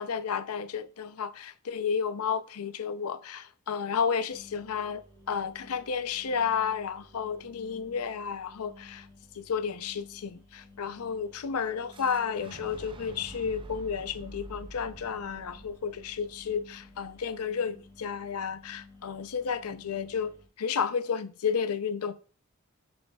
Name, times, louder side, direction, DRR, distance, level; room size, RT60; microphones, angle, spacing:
voice 1, 0.0-5.0 5.3-9.1 9.3-22.1, left 6 dB, 85° left, 0.5 m, -32 dB
sound 1, 4.3-20.5, left 2 dB, 15° left, 2.2 m, -54 dB
Boom, 11.9-17.8, right 2 dB, 25° right, 0.4 m, -48 dB
6.9 x 6.6 x 2.3 m
head